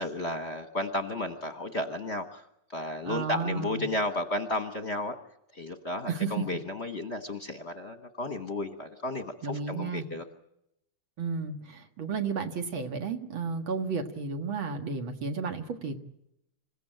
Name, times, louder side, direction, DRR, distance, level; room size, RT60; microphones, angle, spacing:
voice 1, 0.0-5.2 5.5-10.3, left 1 dB, 40° left, 7 dB, 1.2 m, -33 dB
voice 2, 3.0-3.8 6.1-6.3 9.4-10.0 11.2-16.0, right 5 dB, 65° right, 5 dB, 2.4 m, -32 dB
27.0 x 16.0 x 9.0 m, 0.83 s
omnidirectional pair, 2.4 m